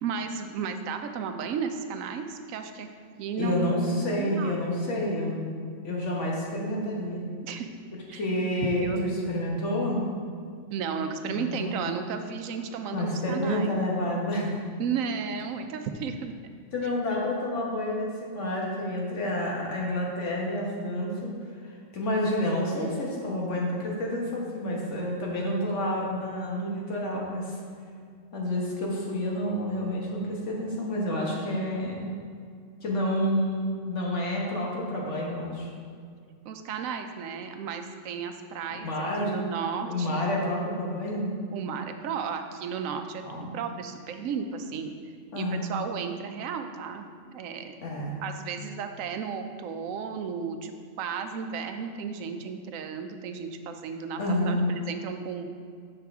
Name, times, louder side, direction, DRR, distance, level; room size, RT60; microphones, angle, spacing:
voice 1, 0.0-2.9 3.2-4.6 7.4-7.7 8.1-8.5 8.8-9.2 10.7-13.7 14.8-16.3 36.4-40.2 41.5-44.9 45.4-47.8 48.2-54.2 54.5-55.5, right 6 dB, 85° right, 7 dB, 1.0 m, -34 dB
voice 2, 3.4-5.5 5.8-7.3 8.1-10.1 11.3-11.8 12.9-14.5 16.7-21.3 21.6-27.6 28.3-32.1 32.8-35.7 38.8-39.3 39.8-41.3 43.2-43.5 45.3-45.7 47.8-48.2 54.2-54.7, left 1 dB, 65° left, -3 dB, 1.5 m, -29 dB
7.6 x 5.7 x 3.5 m, 2.2 s
omnidirectional pair, 1.4 m